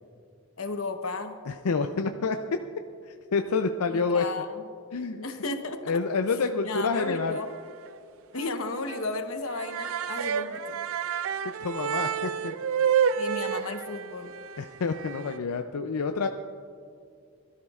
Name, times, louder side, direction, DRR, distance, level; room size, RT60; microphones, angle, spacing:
voice 1, 0.6-1.3 3.9-4.6 5.2-6.0 6.6-7.5 8.3-10.8 13.2-14.3, left 3 dB, 70° left, 7 dB, 1.0 m, -34 dB
voice 2, 1.5-2.4 3.1-4.2 4.9-5.3 5.9-7.4 11.6-12.6 14.6-16.3, left 4 dB, 90° left, 6 dB, 0.5 m, -28 dB
sound 1, 6.9-7.6 7.9-8.0 8.4-8.5 8.9-9.0 9.4-15.4, right 8 dB, 65° right, 0.4 m, -30 dB
21.0 x 12.5 x 2.4 m, 2.3 s
head